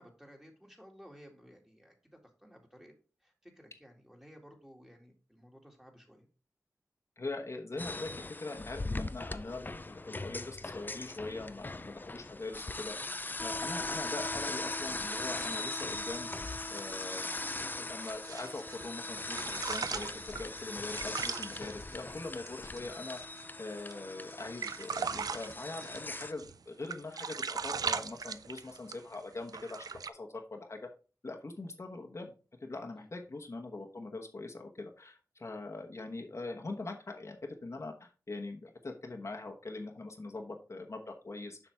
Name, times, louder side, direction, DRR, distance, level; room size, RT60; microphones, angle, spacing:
voice 1, 0.0-1.9 2.4-2.9 3.2-6.3 11.3-11.6 13.0-13.2 33.0-33.1, equal, 10° right, 1 dB, 2.2 m, -56 dB
voice 2, 7.2-8.1 8.4-16.3 16.7-17.3 17.7-23.2 23.6-30.9 31.2-32.3 32.6-37.4 37.6-41.6, left 2 dB, 50° left, 3 dB, 1.1 m, -42 dB
sound 1, 7.8-26.3, left 2 dB, 30° left, 0.5 m, -40 dB
sound 2, 15.3-18.9 19.2-23.4 23.8-23.9 24.3-26.6 26.8-29.1 29.5-30.1, right 5 dB, 85° right, 0.4 m, -39 dB
7.3 x 5.9 x 3.5 m, 0.35 s
wide cardioid pair, 65°, 6 cm